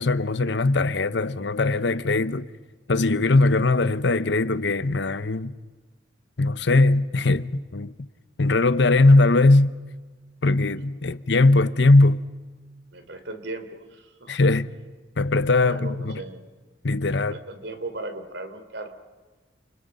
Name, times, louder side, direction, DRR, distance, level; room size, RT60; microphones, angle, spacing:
voice 1, 0.0-2.5 2.9-5.5 6.4-7.9 8.4-9.7 10.4-12.2 14.3-14.7 15.2-16.2 16.8-17.3, left 2 dB, 65° left, 0.9 m, -20 dB
voice 2, 12.9-14.3 15.6-16.4 17.1-18.9, right 2 dB, 70° right, 3.2 m, -37 dB
29.5 x 28.5 x 5.3 m
head